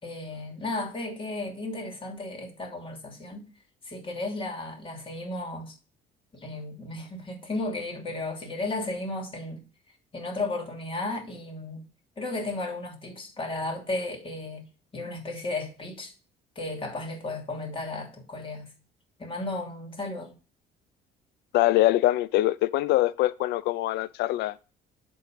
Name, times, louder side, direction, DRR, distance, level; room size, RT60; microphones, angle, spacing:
voice 1, 0.0-3.5 3.8-5.8 6.3-9.7 10.1-11.8 12.2-14.6 14.9-16.1 16.5-18.7 19.2-20.3, left 2 dB, 30° left, 2.8 m, -34 dB
voice 2, 21.5-24.7, left 16 dB, 80° left, 0.5 m, -24 dB
11.0 x 3.9 x 5.3 m
cardioid pair, 110°, 17 cm